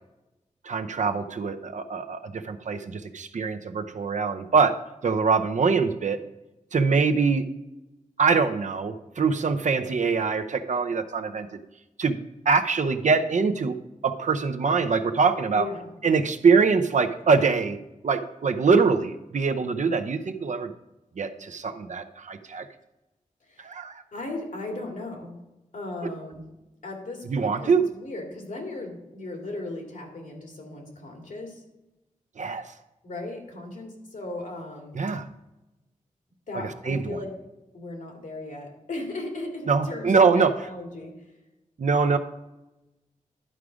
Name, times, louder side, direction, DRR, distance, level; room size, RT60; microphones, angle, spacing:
voice 1, 0.6-4.8 5.0-6.2 6.7-7.5 8.2-11.5 12.0-12.2 12.5-13.8 14.0-15.7 16.0-17.8 18.0-20.7 21.2-22.7 23.6-23.9 26.0-26.1 27.3-27.8 32.4-32.7 34.9-35.3 36.5-37.2 39.7-40.5 41.8-42.2, right 5 dB, 65° right, 8 dB, 0.7 m, -23 dB
voice 2, 15.5-15.9 23.4-23.7 24.1-25.4 25.7-31.6 33.0-35.0 36.5-37.4 37.7-41.3, left 2 dB, 75° left, 1 dB, 2.2 m, -37 dB
11.0 x 4.9 x 5.0 m, 0.98 s
wide cardioid pair, 95°, 13 cm